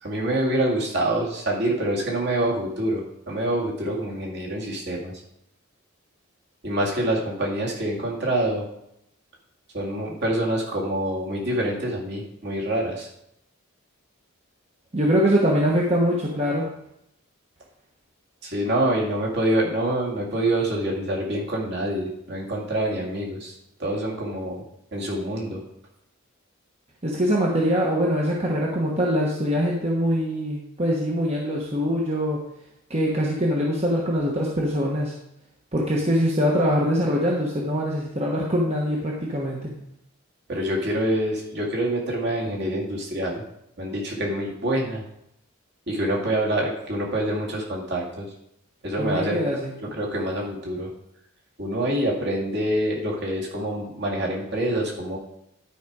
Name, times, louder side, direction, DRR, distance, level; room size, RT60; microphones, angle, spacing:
voice 1, 0.0-5.1 6.6-8.7 9.7-13.1 18.4-23.5 23.8-24.6 24.9-25.6 40.5-43.4 43.8-45.0 45.9-48.3 48.8-49.4 49.8-50.9 51.6-55.2, right 1 dB, 50° right, -3 dB, 2.3 m, -26 dB
voice 2, 14.9-16.6 27.0-32.4 32.9-35.1 35.7-39.7 49.0-49.7, equal, 30° right, -3 dB, 1.2 m, -23 dB
11.5 x 5.1 x 4.8 m, 0.78 s
head